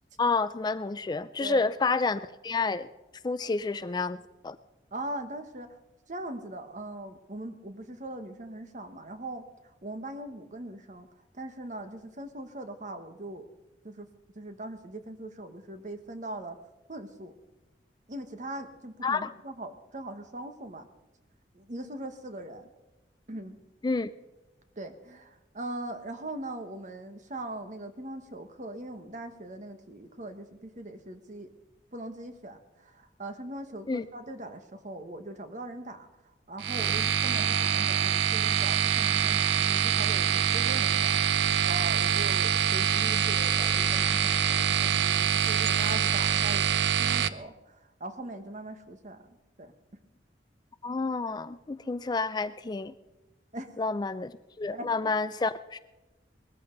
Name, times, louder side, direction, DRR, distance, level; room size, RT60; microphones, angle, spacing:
voice 1, 0.2-2.9 3.2-4.6 19.0-19.3 23.8-24.1 33.9-34.0 50.8-52.9 53.8-55.8, left 4 dB, 25° left, 14 dB, 0.4 m, -29 dB
voice 2, 4.9-5.8 6.1-13.5 13.8-14.1 14.3-16.6 16.9-17.3 18.1-20.9 21.5-22.7 23.3-23.6 24.8-31.5 31.9-50.0 53.5-53.7 54.7-54.9, right 1 dB, 45° right, 8 dB, 1.4 m, -41 dB
sound 1, 36.6-47.3, right 8 dB, 85° right, 0.6 m, -25 dB
20.0 x 14.0 x 3.9 m, 1.1 s
head